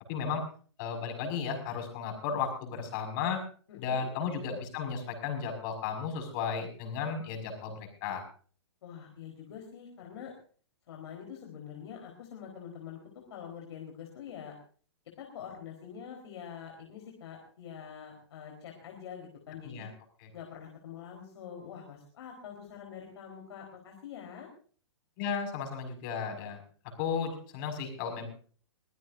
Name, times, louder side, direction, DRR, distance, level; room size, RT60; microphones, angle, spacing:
voice 1, 0.1-0.4 0.8-3.4 3.8-8.2 19.6-19.9 20.2-20.3 25.2-26.6 27.0-28.3, left 6 dB, 45° left, 5 dB, 5.7 m, -34 dB
voice 2, 3.7-4.1 8.8-10.3 10.9-13.0 13.3-14.6 15.2-19.9 20.3-24.5, left 8 dB, 65° left, 1 dB, 4.1 m, -45 dB
23.0 x 15.5 x 2.6 m, 0.42 s
hypercardioid pair, 125°, 15 cm